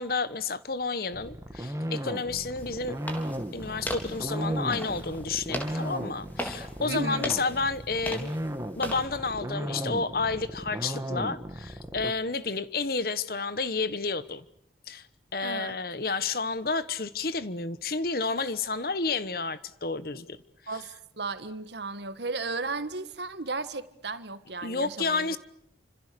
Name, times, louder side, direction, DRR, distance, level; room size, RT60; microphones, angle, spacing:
voice 1, 0.0-3.0 3.5-8.3 8.8-14.4 14.9-15.1 15.3-20.4 24.6-25.4, left 4 dB, 55° left, 1.2 m, -30 dB
sound 1, 1.1-12.1, equal, 15° right, 2.0 m, -35 dB
sound 2, 2.6-9.1, equal, 10° left, 3.8 m, -39 dB
voice 2, 6.9-7.2 15.4-15.8 20.7-25.3, right 3 dB, 70° right, 1.6 m, -35 dB
29.0 x 26.5 x 6.9 m
head